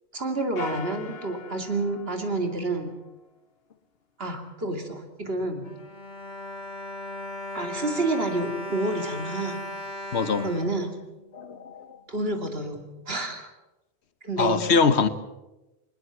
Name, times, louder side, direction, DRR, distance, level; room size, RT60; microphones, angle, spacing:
voice 1, 0.1-2.9 4.2-5.7 7.5-9.6 10.4-11.0 12.1-13.5 14.2-14.6, right 2 dB, 65° right, 5 dB, 2.8 m, -29 dB
sound 1, 0.6-3.3, left 5 dB, 65° left, 1.3 m, -41 dB
Bowed string instrument, 5.4-11.6 12.3-12.4 12.7-12.9, left 1 dB, 45° left, 1.9 m, -38 dB
voice 2, 10.1-10.5 11.3-12.0 14.4-15.1, left 5 dB, 85° left, 13 dB, 1.4 m, -23 dB
21.0 x 20.5 x 7.1 m, 1.0 s
omnidirectional pair, 1.1 m